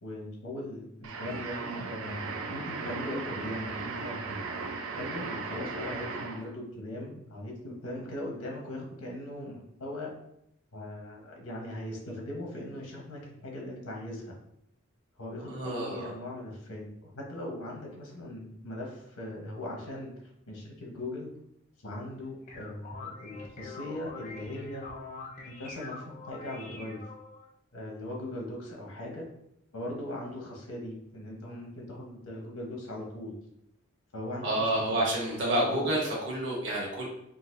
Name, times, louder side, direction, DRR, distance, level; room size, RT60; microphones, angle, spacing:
voice 1, 0.0-4.4 5.0-10.1 10.7-14.4 15.2-21.3 21.8-24.9 25.4-27.0 27.7-29.3 29.7-33.4 34.1-35.0 35.4-35.9, left 1 dB, 85° left, -1 dB, 1.0 m, -39 dB
sound 1, 1.0-6.5, right 4 dB, 75° right, 0.4 m, -37 dB
voice 2, 15.5-16.1 34.4-37.1, right 1 dB, 55° right, -3 dB, 1.2 m, -29 dB
sound 2, 22.2-27.5, left 3 dB, 35° left, 0.5 m, -44 dB
4.0 x 2.5 x 2.6 m, 0.78 s
head